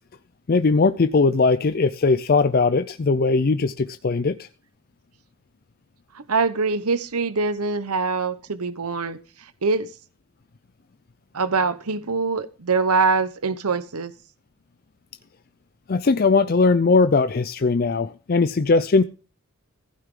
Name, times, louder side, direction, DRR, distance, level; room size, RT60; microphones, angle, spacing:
voice 1, 0.5-4.5 15.9-19.0, left 4 dB, 45° left, 0.4 m, -19 dB
voice 2, 6.1-9.9 11.3-14.1, right 4 dB, 90° right, 0.9 m, -24 dB
15.5 x 9.2 x 3.7 m
head